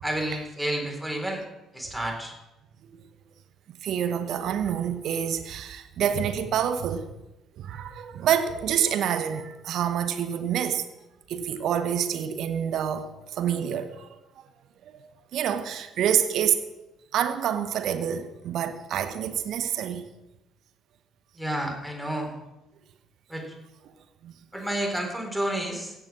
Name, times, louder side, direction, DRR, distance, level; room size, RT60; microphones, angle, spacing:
voice 1, 0.0-1.4 1.7-2.3 21.4-22.3 23.3-23.5 24.5-25.9, right 1 dB, 5° right, 4.1 m, -30 dB
voice 2, 3.8-7.1 7.6-10.8 11.3-14.2 15.0-16.7 17.1-20.1 24.2-24.3, right 9 dB, 60° right, 1.0 m, -27 dB
16.0 x 7.3 x 7.3 m
figure-of-eight pair, 50°, 0 cm